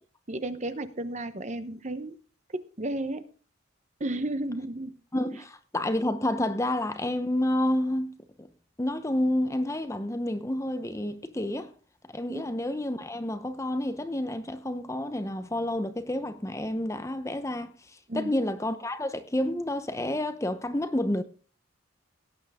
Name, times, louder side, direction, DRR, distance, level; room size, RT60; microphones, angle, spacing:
voice 1, 0.3-2.2 2.5-3.2 4.0-5.0 12.3-12.5 18.1-18.3, right 1 dB, 35° right, 0.9 m, -33 dB
voice 2, 5.1-8.1 8.4-8.5 8.8-11.7 12.1-17.7 18.1-21.2, left 1 dB, 15° left, 0.8 m, -29 dB
17.5 x 9.0 x 3.6 m
head